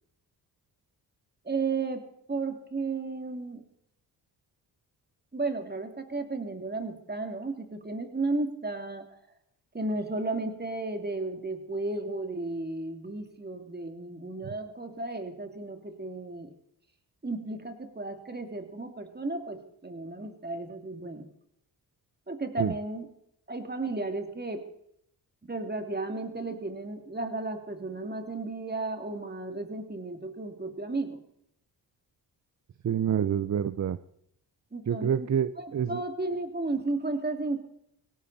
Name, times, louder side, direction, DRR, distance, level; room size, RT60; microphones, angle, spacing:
voice 1, 1.4-3.6 5.3-9.1 9.7-16.5 17.2-21.3 22.3-23.1 23.5-24.7 25.5-31.2 34.7-35.3 35.6-37.6, right 3 dB, 25° right, 6 dB, 2.9 m, -34 dB
voice 2, 32.8-34.0 34.9-36.0, right 8 dB, 40° right, 15 dB, 0.7 m, -27 dB
19.0 x 17.0 x 4.3 m, 0.74 s
supercardioid pair, 60°, 42 cm